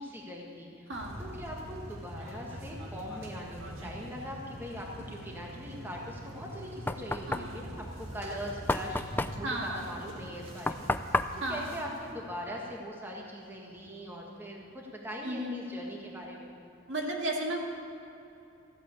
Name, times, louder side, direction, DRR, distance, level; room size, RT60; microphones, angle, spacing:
voice 1, 0.0-0.9 1.2-10.9 11.5-16.5, equal, 10° right, -2 dB, 1.5 m, -41 dB
voice 2, 0.9-1.3 7.3-7.7 9.4-9.9 11.4-11.7 15.2-15.6 16.9-17.6, right 1 dB, 60° right, 0 dB, 2.1 m, -34 dB
sound 1, 0.9-12.1, right 1 dB, 80° right, 2.1 m, -44 dB
Knock, 6.3-12.8, left 2 dB, 10° left, 0.3 m, -34 dB
14.5 x 8.7 x 8.4 m, 2.9 s
head